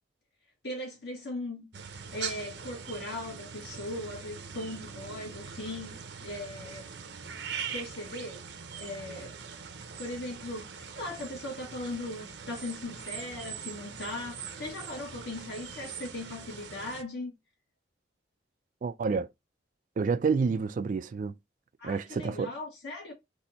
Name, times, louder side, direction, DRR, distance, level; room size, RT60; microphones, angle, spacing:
voice 1, 0.6-1.7 2.1-6.0 6.2-6.9 7.7-8.4 8.8-9.3 10.0-10.7 11.0-17.3 21.8-23.1, left 2 dB, 65° left, 1.9 m, -38 dB
sound 1, 1.7-17.0, right 6 dB, 65° right, 0.7 m, -42 dB
voice 2, 18.8-19.3 20.0-21.3 21.8-22.5, right 5 dB, 45° right, 0.3 m, -29 dB
4.1 x 2.7 x 4.2 m
head